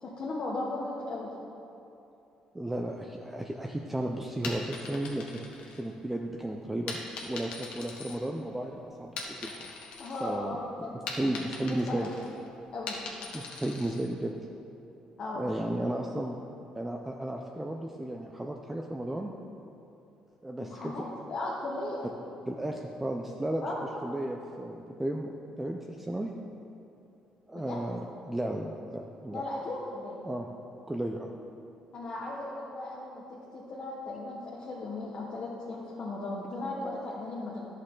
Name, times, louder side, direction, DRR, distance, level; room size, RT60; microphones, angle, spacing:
voice 1, 0.0-1.3 10.0-11.4 11.9-12.2 12.7-13.0 15.2-15.4 20.6-22.1 23.6-23.8 27.5-27.8 29.3-30.3 31.9-37.7, left 2 dB, 45° left, -6 dB, 1.1 m, -37 dB
voice 2, 2.5-5.5 5.8-9.7 10.2-10.6 11.2-12.1 13.3-14.3 15.3-16.4 16.7-19.3 20.4-21.0 22.5-26.3 27.5-29.4 30.2-30.5 30.9-31.3, right 1 dB, 10° right, 1 dB, 0.4 m, -34 dB
sound 1, 4.3-6.2 6.9-8.7 9.0-10.3 10.6-14.1, left 4 dB, 70° left, 1.3 m, -41 dB
11.0 x 6.5 x 3.8 m, 2.8 s
cardioid pair, 120°, 2 cm